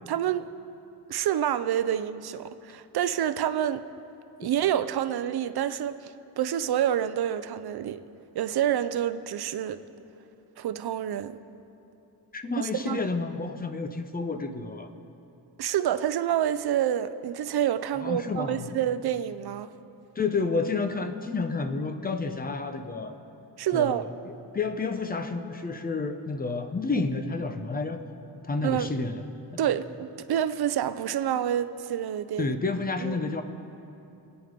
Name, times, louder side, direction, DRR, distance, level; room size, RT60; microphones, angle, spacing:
voice 1, 0.1-0.5 1.1-3.8 4.4-8.0 8.3-9.8 10.6-11.4 12.8-13.0 15.6-19.7 23.6-24.1 28.6-28.9 29.6-32.6 33.0-33.2, right 10 dB, 65° right, 12 dB, 0.7 m, -28 dB
voice 2, 12.3-14.9 18.0-18.7 20.2-23.2 23.7-24.1 24.5-28.0 28.4-29.2 32.4-33.4, left 3 dB, 20° left, 8 dB, 0.8 m, -30 dB
25.5 x 9.3 x 5.2 m, 2.9 s
wide cardioid pair, 160°, 42 cm